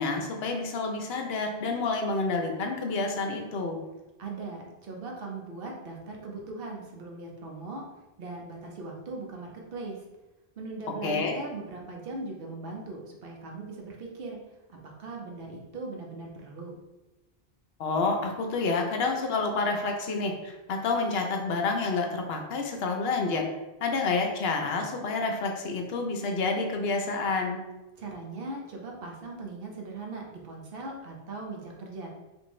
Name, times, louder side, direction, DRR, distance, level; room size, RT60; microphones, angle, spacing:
voice 1, 0.0-3.8 11.0-11.3 17.8-23.5 23.8-27.6, left 3 dB, 75° left, 3 dB, 0.8 m, -29 dB
voice 2, 4.2-7.8 8.2-10.0 10.6-14.4 14.7-16.7 28.0-32.1, right 3 dB, 65° right, 0 dB, 0.9 m, -39 dB
3.5 x 2.5 x 3.0 m, 1.0 s
omnidirectional pair, 1.1 m